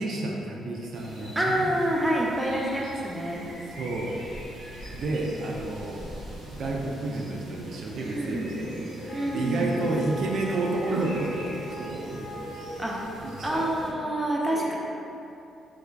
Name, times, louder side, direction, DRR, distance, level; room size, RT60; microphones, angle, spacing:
voice 1, 0.0-1.7 3.8-4.2 4.9-6.1 6.4-12.5 13.2-14.0 14.5-14.7, right 2 dB, 65° right, -1 dB, 0.4 m, -31 dB
sound 1, 0.9-13.9, right 1 dB, 85° right, 0.8 m, -41 dB
voice 2, 1.4-3.4 7.9-8.5 9.1-9.7 12.8-12.9 13.4-14.7, right 1 dB, 15° right, -3 dB, 0.5 m, -27 dB
Wind instrument woodwind instrument, 9.1-13.6, left 1 dB, 55° left, 0.4 m, -43 dB
3.4 x 3.3 x 2.2 m, 2.7 s
cardioid pair, 90°, 0 cm